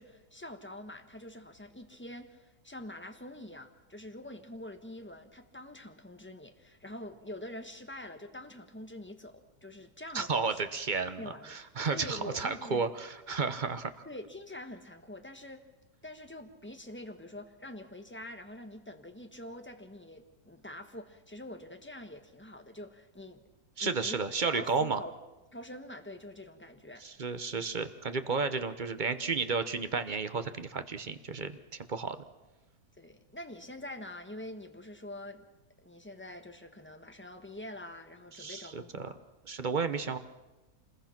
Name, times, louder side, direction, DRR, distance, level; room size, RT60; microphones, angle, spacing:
voice 1, 0.0-10.6 11.2-11.6 11.9-12.8 14.0-15.7 16.0-23.4 23.8-24.2 24.5-25.2 25.5-27.0 27.5-27.7 33.0-35.5 35.8-39.2, left 1 dB, 5° left, 6 dB, 1.4 m, -45 dB
voice 2, 10.1-11.2 11.5-13.9 23.8-25.0 27.0-32.2 38.4-39.1 39.5-40.2, right 4 dB, 35° right, 10 dB, 0.9 m, -32 dB
26.5 x 21.0 x 6.0 m, 1.1 s
omnidirectional pair, 1.7 m